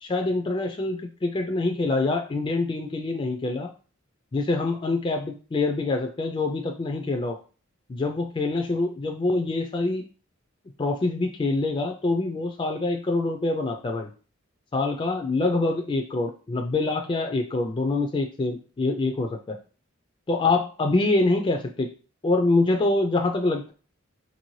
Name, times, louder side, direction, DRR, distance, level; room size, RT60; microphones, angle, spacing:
voice 1, 0.0-3.7 4.3-7.4 7.9-10.1 10.8-14.1 14.7-19.6 20.3-21.9 22.2-23.7, left 2 dB, 25° left, 3 dB, 0.3 m, -25 dB
4.3 x 2.6 x 3.0 m, 0.37 s
head